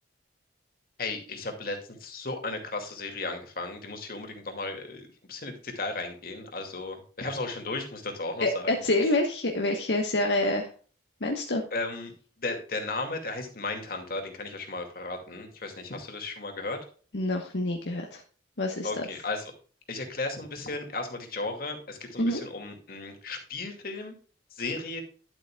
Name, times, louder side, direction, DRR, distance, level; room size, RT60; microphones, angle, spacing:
voice 1, 1.0-8.8 11.7-12.1 12.4-16.8 18.8-19.5 19.9-24.1 24.5-25.0, left 3 dB, 55° left, 4 dB, 2.4 m, -35 dB
voice 2, 8.4-10.7 11.2-11.6 17.1-18.2 18.6-19.0 22.2-22.4, left 1 dB, 75° left, 1 dB, 1.3 m, -27 dB
11.5 x 8.0 x 2.4 m, 0.40 s
head